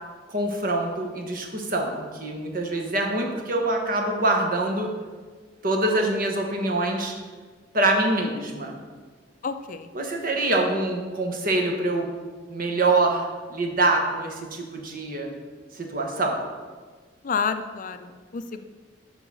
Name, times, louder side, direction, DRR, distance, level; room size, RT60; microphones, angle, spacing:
voice 1, 0.3-4.9 5.6-7.1 7.7-8.8 9.9-12.1 12.5-15.3 15.7-16.4, right 2 dB, 50° right, 2 dB, 1.2 m, -25 dB
voice 2, 9.4-9.9 17.2-18.7, left 5 dB, 45° left, 9 dB, 0.4 m, -29 dB
9.0 x 3.9 x 6.1 m, 1.5 s
head